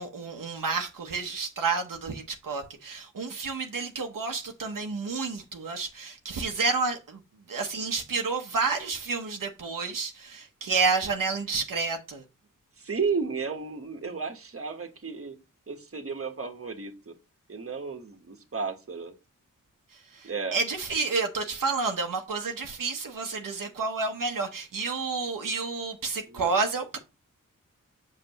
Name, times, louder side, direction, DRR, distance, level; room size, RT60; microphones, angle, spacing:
voice 1, 0.0-7.2 7.5-12.2 19.9-27.0, right 4 dB, 75° right, 1.0 m, -30 dB
voice 2, 12.8-15.4 15.7-17.1 17.5-19.1 20.2-20.6 26.3-26.5, right 5 dB, 40° right, 1.3 m, -33 dB
6.7 x 5.4 x 3.0 m
cardioid pair, 45°, 33 cm